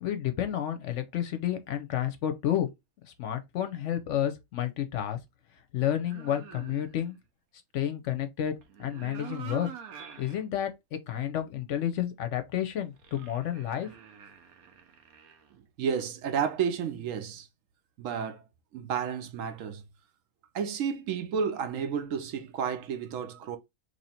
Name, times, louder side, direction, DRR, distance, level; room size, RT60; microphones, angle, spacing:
voice 1, 0.0-2.7 3.0-5.2 5.7-7.2 7.7-8.5 8.8-9.7 10.2-13.9, left 11 dB, 65° left, 0.8 m, -30 dB
sound 1, 6.0-7.2 8.6-10.4 10.9-11.0 12.9-15.5, right 8 dB, 90° right, 1.2 m, -46 dB
voice 2, 15.5-17.5 18.0-18.4 18.7-19.8 20.5-23.6, right 7 dB, 75° right, 0.9 m, -31 dB
3.0 x 2.7 x 4.2 m
omnidirectional pair, 1.5 m